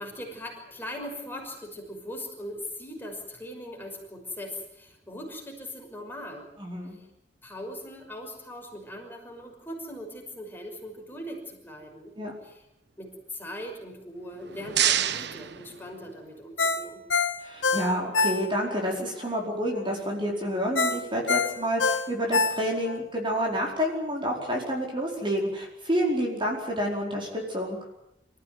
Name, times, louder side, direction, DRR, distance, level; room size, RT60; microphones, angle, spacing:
voice 1, 0.0-6.5 7.4-12.1 12.4-12.6 13.0-17.0, left 1 dB, 10° left, 1 dB, 5.9 m, -40 dB
voice 2, 6.6-7.0 12.2-12.3 17.4-27.8, equal, 25° right, -1 dB, 4.8 m, -29 dB
sound 1, 14.2-16.4, right 10 dB, 65° right, 1.1 m, -29 dB
Ringtone, 16.6-18.8 19.2-19.3 20.8-23.0 23.4-23.5, left 4 dB, 85° left, 1.7 m, -25 dB
26.5 x 15.0 x 9.6 m, 0.85 s
head